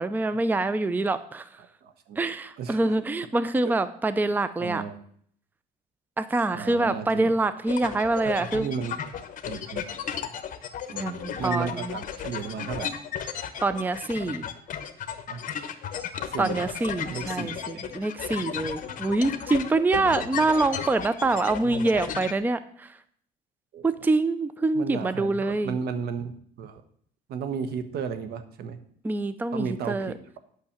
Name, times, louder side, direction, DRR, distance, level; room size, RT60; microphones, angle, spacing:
voice 1, 0.0-1.6 2.2-4.8 6.2-8.7 10.9-12.0 13.6-14.4 16.4-23.0 23.8-25.8 29.0-30.1, right 2 dB, 10° right, 13 dB, 0.5 m, -25 dB
voice 2, 1.8-2.2 2.6-2.9 4.6-5.0 6.5-7.4 8.2-9.0 9.4-9.9 10.9-13.0 15.3-15.5 16.2-16.7 17.1-17.8 19.9-20.4 21.6-21.9 23.7-23.9 24.7-26.8 27.3-28.8 29.5-30.4, right 6 dB, 70° right, 10 dB, 1.1 m, -34 dB
sound 1, 7.7-22.3, left 8 dB, 50° left, 1.0 m, -34 dB
8.9 x 5.8 x 7.1 m, 0.63 s
cardioid pair, 110°, 17 cm